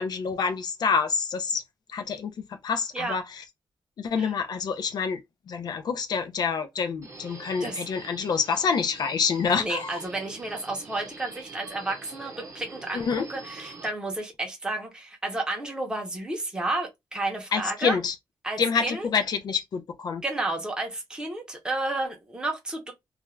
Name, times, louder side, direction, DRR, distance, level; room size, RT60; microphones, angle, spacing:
voice 1, 0.0-1.6 1.9-2.3 2.6-3.4 4.0-5.2 5.5-10.0 12.9-13.3 17.5-18.1 18.6-20.2, left 6 dB, 55° left, 0.3 m, -27 dB
Subway metro underground, 7.0-13.9, right 3 dB, 40° right, 0.8 m, -45 dB
voice 2, 9.6-18.0 18.4-19.1 20.2-22.9, right 2 dB, 10° right, 0.6 m, -31 dB
2.3 x 2.2 x 3.0 m
wide cardioid pair, 180°, 8 cm